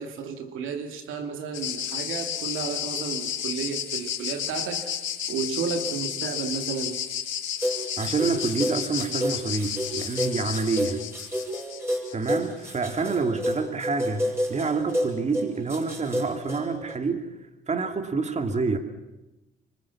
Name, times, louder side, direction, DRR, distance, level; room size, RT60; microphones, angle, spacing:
voice 1, 0.0-4.9 5.3-7.0, right 5 dB, 85° right, 6 dB, 2.7 m, -32 dB
sound 1, 1.5-12.5, left 9 dB, 75° left, 3.7 m, -32 dB
sound 2, 7.6-17.0, equal, 10° right, 7.6 m, -30 dB
voice 2, 8.0-11.0 12.1-17.3 17.7-18.8, right 4 dB, 35° right, 6 dB, 2.6 m, -27 dB
25.5 x 25.0 x 7.3 m, 1.0 s
cardioid pair, 90°, 20 cm